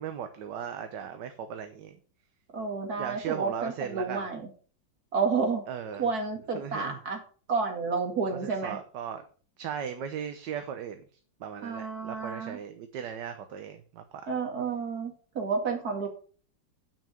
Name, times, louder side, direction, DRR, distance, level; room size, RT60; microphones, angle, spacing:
voice 1, 0.0-2.0 3.0-4.3 5.7-6.1 6.5-7.0 8.3-9.2 9.6-11.1 11.4-14.2, right 8 dB, 70° right, 8 dB, 1.5 m, -37 dB
voice 2, 2.5-4.5 5.1-5.6 6.0-7.2 7.5-8.8 11.6-12.6 14.3-16.1, right 4 dB, 55° right, 2 dB, 2.6 m, -30 dB
9.0 x 6.1 x 6.5 m, 0.41 s
omnidirectional pair, 2.0 m